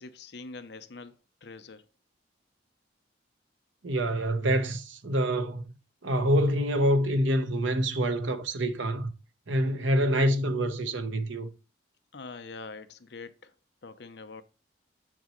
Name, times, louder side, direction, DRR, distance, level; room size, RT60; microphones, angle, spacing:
voice 1, 0.0-1.8 9.6-9.8 12.1-13.5 13.8-14.4, left 4 dB, 65° left, 0.6 m, -44 dB
voice 2, 3.8-5.7 6.0-9.1 9.5-11.5, equal, 90° right, 0.9 m, -26 dB
7.3 x 6.0 x 3.0 m
head